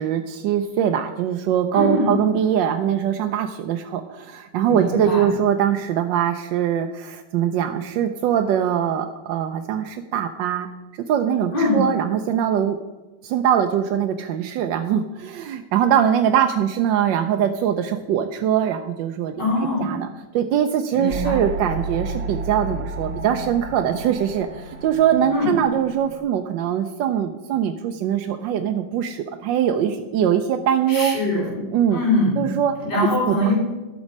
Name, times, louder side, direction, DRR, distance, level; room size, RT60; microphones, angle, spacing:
voice 1, 0.0-10.7 11.1-12.8 13.2-19.3 19.8-20.1 20.3-31.2 31.7-32.0 32.4-32.7 33.3-33.5, right 9 dB, 85° right, 5 dB, 1.3 m, -22 dB
voice 2, 1.7-2.2 4.7-5.3 11.5-11.8 19.3-19.9 20.9-21.4 25.3-25.5 30.9-31.6 31.9-32.4 32.8-33.5, left 1 dB, 65° left, -4 dB, 3.9 m, -22 dB
sound 1, 21.1-26.2, right 3 dB, 50° right, 0.9 m, -32 dB
13.0 x 6.2 x 5.3 m, 1.1 s
omnidirectional pair, 1.9 m